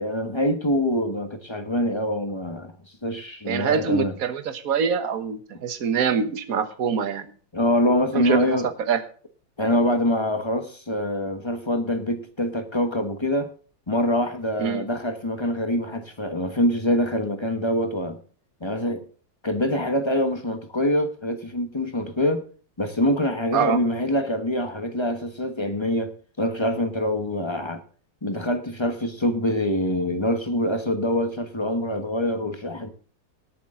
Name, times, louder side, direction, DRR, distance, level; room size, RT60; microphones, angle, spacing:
voice 1, 0.0-2.7 3.0-4.1 7.5-8.7 9.6-13.5 13.9-18.2 18.6-19.0 19.4-22.4 22.8-27.8 28.2-32.9, left 1 dB, 20° left, 0.8 m, -25 dB
voice 2, 3.5-7.2 8.1-9.0 14.6-14.8 23.5-23.8, right 6 dB, 50° right, 1.5 m, -24 dB
18.5 x 8.5 x 3.7 m
omnidirectional pair, 2.2 m